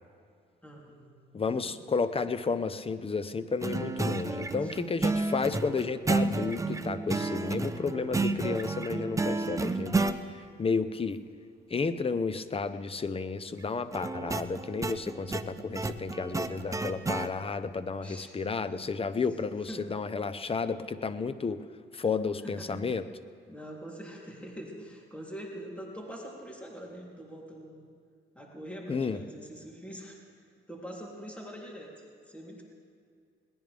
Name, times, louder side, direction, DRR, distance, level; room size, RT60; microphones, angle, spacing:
voice 1, 0.6-1.8 4.6-4.9 18.0-18.3 19.7-19.9 21.9-22.0 22.4-22.8 23.5-27.9 28.3-30.2 30.7-32.6, equal, 5° left, -2 dB, 3.3 m, -44 dB
voice 2, 1.3-11.2 11.7-21.6 21.9-23.0 28.9-29.2, left 4 dB, 30° left, 12 dB, 0.8 m, -32 dB
sound 1, 3.6-10.2 13.9-17.3, right 3 dB, 15° right, 0.8 m, -31 dB
21.5 x 19.0 x 3.5 m, 2.3 s
cardioid pair, 90°, 20 cm